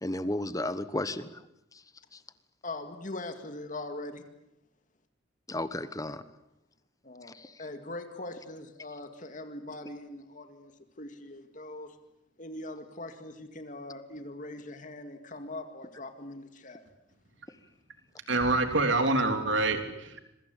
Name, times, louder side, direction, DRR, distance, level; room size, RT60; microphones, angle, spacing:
voice 1, 0.0-1.4 1.7-1.8 2.1-2.2 5.5-6.2 7.2-7.6, left 1 dB, 15° left, 13 dB, 1.2 m, -34 dB
voice 2, 2.6-4.2 7.0-7.3 7.6-10.7 11.0-12.0 12.4-16.8, left 2 dB, 40° left, 7 dB, 2.2 m, -41 dB
voice 3, 18.3-20.2, right 2 dB, 70° right, 6 dB, 3.4 m, -26 dB
26.5 x 24.0 x 8.5 m, 0.86 s
head